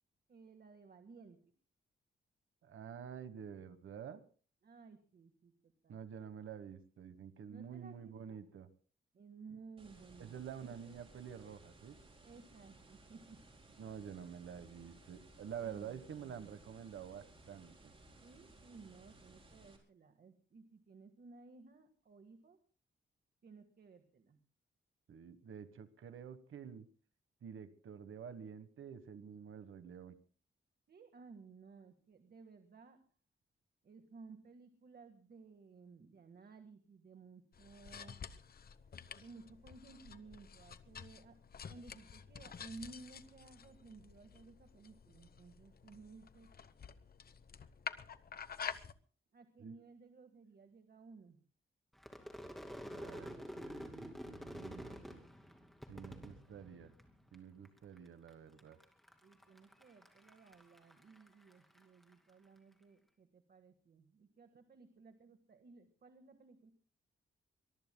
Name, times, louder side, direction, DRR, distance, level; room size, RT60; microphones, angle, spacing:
voice 1, 0.3-1.4 4.6-5.5 5.8-6.0 7.5-8.4 9.1-11.0 12.2-13.4 15.6-16.5 18.2-22.6 23.4-24.4 30.9-33.0 33.8-38.2 39.1-41.4 41.7-46.5 49.3-51.4 55.5-55.7 59.2-66.7, right 4 dB, 50° right, 7 dB, 1.7 m, -57 dB
voice 2, 2.6-4.2 5.9-8.7 10.2-11.9 13.8-17.9 25.1-26.9 27.4-30.2 49.6-49.7 52.9-55.2 55.9-56.9 57.3-58.8, right 8 dB, 80° right, 11 dB, 1.4 m, -49 dB
sound 1, 9.8-19.8, right 2 dB, 25° right, 4.6 m, -61 dB
sound 2, 37.5-48.9, left 6 dB, 50° left, 1.0 m, -50 dB
Crowd / Fireworks, 52.0-57.3 57.6-58.3 58.6-62.1, equal, ahead, 2.6 m, -49 dB
23.5 x 22.0 x 2.3 m, 0.40 s
wide cardioid pair, 155°, 20 cm